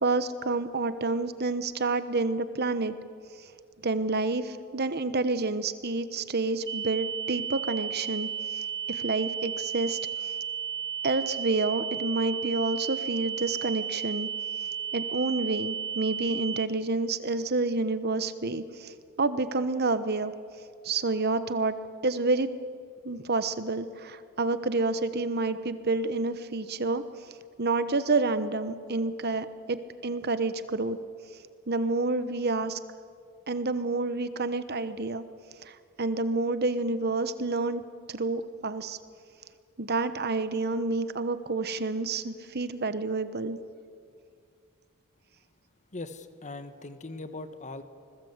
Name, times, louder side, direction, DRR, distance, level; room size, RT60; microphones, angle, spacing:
voice 1, 0.0-2.9 3.8-10.3 11.0-14.3 14.9-20.3 20.8-21.7 22.0-22.5 23.0-27.0 27.6-31.0 31.7-32.8 33.5-35.2 35.6-37.8 38.1-39.0 39.8-43.6, right 3 dB, 45° right, 12 dB, 1.1 m, -29 dB
sound 1, 6.7-16.7, right 8 dB, 20° right, 0.8 m, -34 dB
voice 2, 45.9-47.8, left 2 dB, 35° left, 10 dB, 1.2 m, -40 dB
26.0 x 20.5 x 8.1 m, 2.3 s
head